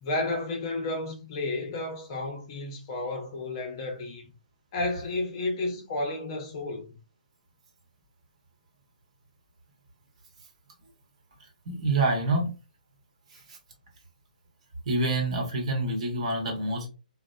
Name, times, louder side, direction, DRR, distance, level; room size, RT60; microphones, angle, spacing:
voice 1, 0.0-4.3 4.7-7.0, left 2 dB, 30° left, 0.6 m, -32 dB
voice 2, 11.7-12.5 13.3-13.6 14.8-16.9, right 2 dB, 45° right, 1.0 m, -27 dB
2.8 x 2.1 x 2.2 m
figure-of-eight pair, 135°, 5 cm